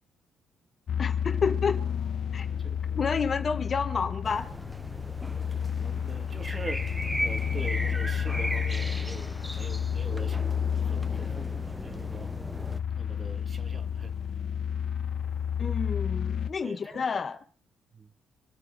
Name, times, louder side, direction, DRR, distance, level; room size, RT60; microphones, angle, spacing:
sound 1, 0.9-16.5, left 8 dB, 55° left, 1.0 m, -31 dB
voice 1, 1.0-1.8 2.3-2.5 2.9-4.5 15.6-17.4, left 5 dB, 40° left, 1.6 m, -29 dB
voice 2, 2.3-3.0 5.8-6.8 7.2-10.6 10.8-12.3 12.9-14.1 16.6-17.1 17.9-18.1, right 3 dB, 30° right, 2.2 m, -44 dB
sound 2, 4.2-12.8, equal, 5° right, 0.9 m, -37 dB
26.5 x 9.5 x 4.0 m
cardioid pair, 90°, 0 cm